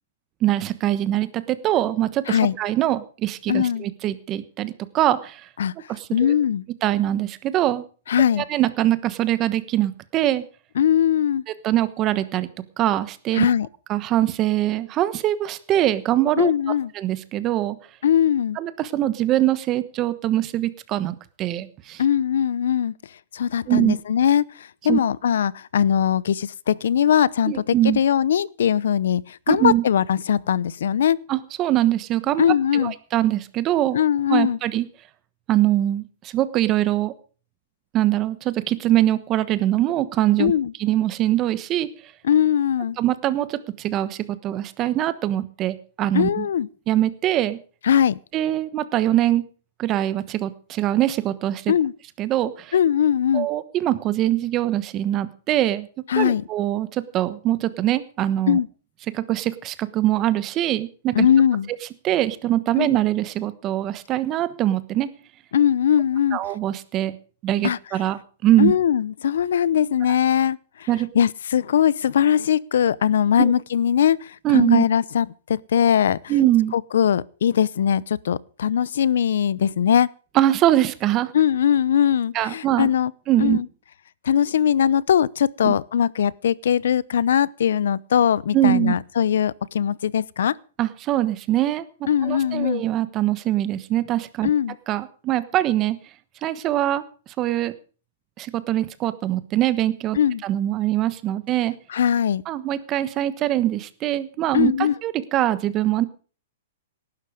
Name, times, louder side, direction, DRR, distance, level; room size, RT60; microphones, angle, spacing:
voice 1, 0.4-5.4 5.9-6.3 6.8-7.8 8.5-10.4 11.6-12.5 12.8-13.5 13.9-16.5 16.9-17.8 18.5-22.0 23.7-24.0 24.9-25.0 27.5-28.0 29.5-29.8 31.3-32.5 32.7-34.0 34.3-34.9 35.5-37.1 37.9-40.5 40.8-41.9 43.0-46.5 46.9-47.6 48.3-49.4 49.8-51.7 52.2-52.7 53.3-55.9 56.2-58.6 59.1-61.3 62.0-65.1 66.3-67.2 67.4-68.7 70.9-71.1 73.4-73.5 74.4-74.8 76.3-76.7 80.3-81.3 82.3-82.9 83.3-83.6 85.6-85.7 88.5-88.9 90.8-91.8 92.2-94.5 94.9-96.0 96.4-97.0 97.4-97.7 98.4-101.7 102.5-106.0, right 13 dB, 25° right, 1.2 m, -22 dB
voice 2, 3.5-3.9 5.6-5.7 6.1-6.6 8.1-8.4 10.8-11.4 13.3-13.7 16.4-16.9 18.0-18.6 22.0-22.9 23.3-27.5 27.8-31.2 32.4-32.9 33.9-34.6 40.4-40.7 42.2-43.0 46.1-46.7 47.8-48.2 51.7-51.9 52.7-53.5 56.1-56.4 58.5-58.7 61.1-61.7 62.8-62.9 65.5-66.4 67.6-67.8 68.6-70.9 71.1-76.2 76.7-80.1 81.3-83.1 83.4-83.7 84.2-90.5 92.1-92.8 94.4-94.7 100.1-100.4 101.9-102.4 104.5-104.9, left 9 dB, 75° left, 0.7 m, -20 dB
18.5 x 12.0 x 5.0 m
hypercardioid pair, 165°, 0 cm